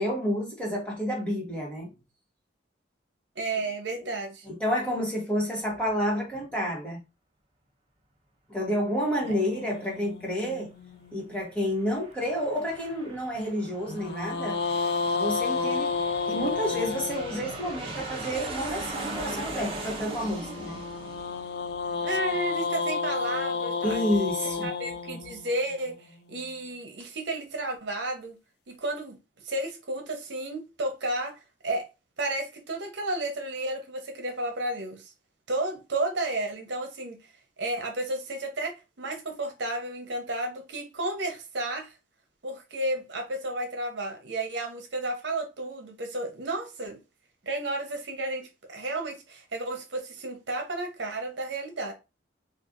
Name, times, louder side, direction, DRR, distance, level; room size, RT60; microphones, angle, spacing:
voice 1, 0.0-1.9 4.4-7.0 8.5-10.7 11.1-14.6 15.1-15.9 16.3-20.8 23.8-24.7, equal, 5° left, 1.4 m, -29 dB
voice 2, 3.4-4.5 22.0-24.0 24.6-28.4 28.7-29.2 29.4-31.4 31.6-31.9 32.2-35.1 35.5-37.2 37.6-41.9 42.4-47.0 47.4-51.9, right 2 dB, 75° right, 0.9 m, -32 dB
sound 1, 9.2-11.6 13.9-18.1 20.2-26.4, left 5 dB, 60° left, 0.4 m, -32 dB
Aircraft, 11.6-22.7, right 2 dB, 30° right, 0.9 m, -40 dB
4.4 x 2.5 x 2.5 m
head